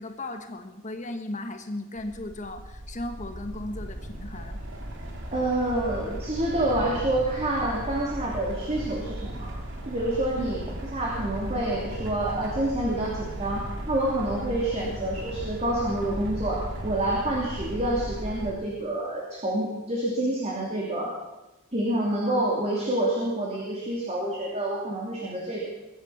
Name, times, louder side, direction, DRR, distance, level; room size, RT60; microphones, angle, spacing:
voice 1, 0.0-4.6 10.4-10.5 14.8-14.9, left 1 dB, 35° left, 6 dB, 1.5 m, -36 dB
sound 1, 2.0-18.5, right 1 dB, 60° right, 2.5 m, -36 dB
voice 2, 5.3-9.5 9.8-10.6 10.9-21.1 21.7-25.7, right 1 dB, 30° right, -4 dB, 2.9 m, -28 dB
22.0 x 9.6 x 5.9 m, 1.0 s
head